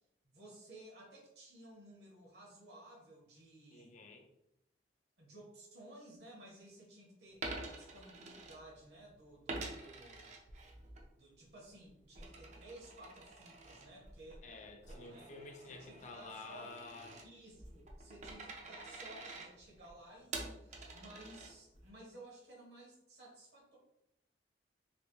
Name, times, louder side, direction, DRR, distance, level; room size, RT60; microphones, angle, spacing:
voice 1, 0.2-4.0 5.2-10.3 11.1-14.4 14.8-15.3 15.7-16.7 17.2-23.8, right 1 dB, 65° right, -3 dB, 1.2 m, -56 dB
voice 2, 3.7-4.3 14.4-17.2, left 3 dB, 40° left, 4 dB, 0.4 m, -51 dB
Coin (dropping), 7.3-9.0 9.5-11.1 11.4-21.9, right 3 dB, 40° right, 0.5 m, -48 dB
3.3 x 2.6 x 2.9 m, 0.83 s
head